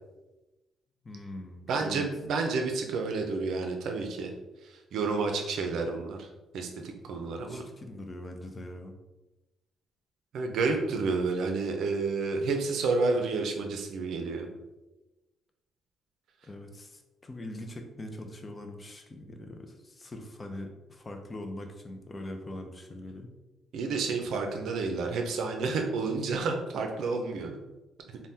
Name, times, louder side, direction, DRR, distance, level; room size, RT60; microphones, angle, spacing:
voice 1, 1.0-2.0 7.5-8.9 16.4-23.3, left 1 dB, 25° left, 4 dB, 0.5 m, -42 dB
voice 2, 1.7-4.3 4.6-6.3 6.5-7.6 10.3-14.5 23.7-27.6 28.1-28.2, right 4 dB, 75° right, 4 dB, 0.5 m, -30 dB
3.4 x 2.2 x 2.7 m, 1.1 s
cardioid pair, 90°, 0 cm